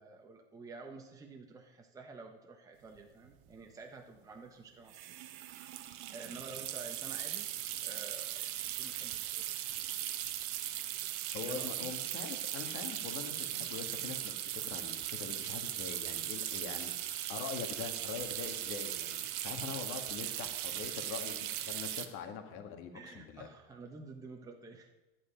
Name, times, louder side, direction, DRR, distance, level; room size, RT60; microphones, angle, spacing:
voice 1, 0.0-5.2 6.1-7.5 7.8-9.5 11.5-11.9 22.9-24.9, right 3 dB, 10° right, 2 dB, 1.1 m, -50 dB
sound 1, 3.0-3.1 3.2-3.5 4.9-22.1, right 13 dB, 55° right, 1.1 m, -38 dB
voice 2, 11.3-23.5, left 7 dB, 40° left, 6 dB, 1.7 m, -43 dB
12.0 x 9.7 x 5.2 m, 1.0 s
supercardioid pair, 135°, 31 cm